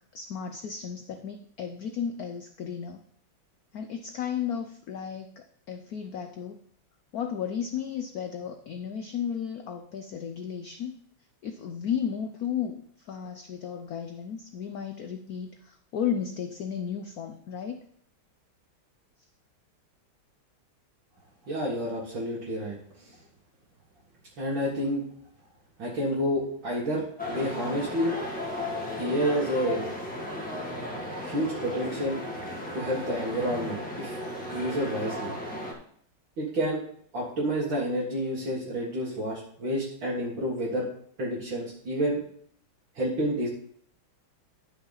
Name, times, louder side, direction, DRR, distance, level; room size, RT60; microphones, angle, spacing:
voice 1, 0.1-3.0 3.7-6.6 7.1-11.0 11.4-17.8, left 8 dB, 75° left, 6 dB, 0.8 m, -34 dB
voice 2, 21.5-22.8 23.1-23.2 24.4-25.0 25.8-28.2 29.0-29.9 31.2-32.2 32.7-34.2 34.5-35.3 36.4-36.8 37.1-40.9 41.2-42.2 43.0-43.5, equal, 65° right, -6 dB, 2.5 m, -29 dB
sound 1, 27.2-35.7, left 1 dB, 5° left, 1.6 m, -35 dB
11.0 x 5.9 x 4.0 m, 0.63 s
omnidirectional pair, 2.3 m